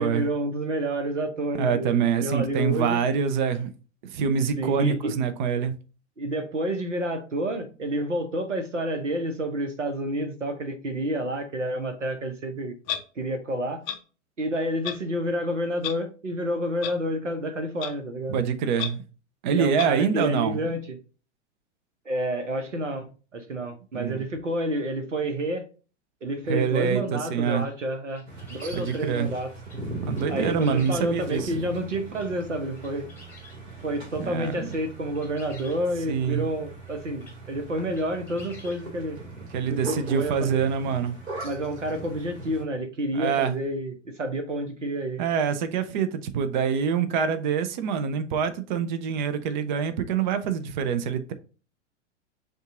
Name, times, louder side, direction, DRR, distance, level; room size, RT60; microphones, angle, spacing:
voice 1, 0.0-3.0 4.6-5.2 6.2-12.7 13.2-13.8 14.4-18.4 19.5-21.0 22.0-25.6 26.2-28.2 28.5-29.5 30.3-33.1 33.8-39.2 39.7-40.7 41.4-45.2, right 1 dB, 75° right, 1.1 m, -29 dB
voice 2, 1.5-3.7 4.1-5.7 18.3-19.0 19.4-20.6 23.9-24.2 26.5-27.7 28.7-29.3 30.0-31.5 34.2-34.7 36.1-36.5 39.5-41.2 43.1-43.6 45.2-51.3, right 7 dB, 40° right, 0.6 m, -25 dB
Clock, 12.9-13.0 13.9-14.0 14.8-15.0 15.8-15.9 16.8-16.9 17.8-17.9 18.8-18.9 19.8-19.9, left 10 dB, 25° left, 0.5 m, -30 dB
sound 1, 27.0-27.1 27.6-29.0 29.6-29.8 30.1-31.4 32.1-32.3 32.8-33.6 34.4-34.8 35.1-35.8 36.9-37.0 37.2-37.4 37.9-38.8, left 2 dB, 5° left, 1.1 m, -49 dB
sound 2, 28.3-42.6, right 2 dB, 60° right, 2.0 m, -39 dB
5.2 x 2.5 x 3.7 m
figure-of-eight pair, 100°, 36 cm